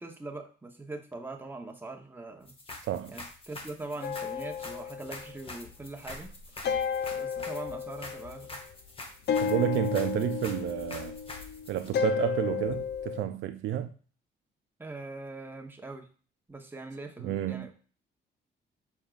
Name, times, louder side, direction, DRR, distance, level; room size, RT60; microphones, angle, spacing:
voice 1, 0.0-2.5 3.1-6.3 7.1-8.6 14.8-16.1 16.5-17.7, right 2 dB, 10° right, 0.8 m, -42 dB
sound 1, 2.5-11.9, left 2 dB, 30° left, 1.0 m, -45 dB
sound 2, 4.0-5.8 6.1-8.7 9.3-13.2, left 7 dB, 55° left, 0.5 m, -33 dB
voice 2, 9.4-11.2 11.7-13.9 17.2-17.7, right 12 dB, 75° right, 0.4 m, -30 dB
6.0 x 3.5 x 2.4 m
cardioid pair, 90°, 20 cm